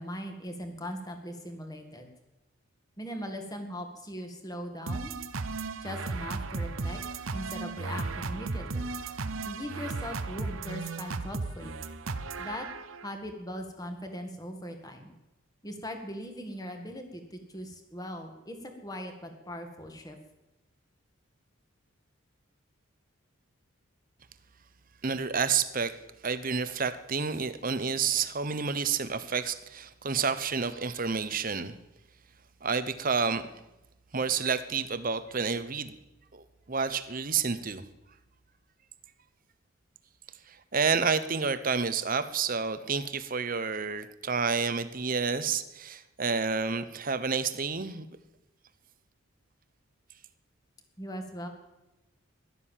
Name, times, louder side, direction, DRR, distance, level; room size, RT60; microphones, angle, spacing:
voice 1, 0.0-2.1 3.0-5.2 5.8-7.0 7.3-8.9 9.4-11.7 12.4-12.7 13.0-15.1 15.6-18.6 18.8-20.2 51.0-51.5, equal, 15° left, 5 dB, 2.0 m, -40 dB
sound 1, 4.9-13.1, right 3 dB, 70° right, 0.9 m, -35 dB
voice 2, 25.0-25.9 26.2-31.8 32.6-33.4 34.1-35.9 36.3-37.8 40.5-48.0, right 5 dB, 40° right, 12 dB, 0.9 m, -29 dB
16.0 x 12.0 x 7.4 m, 0.99 s
head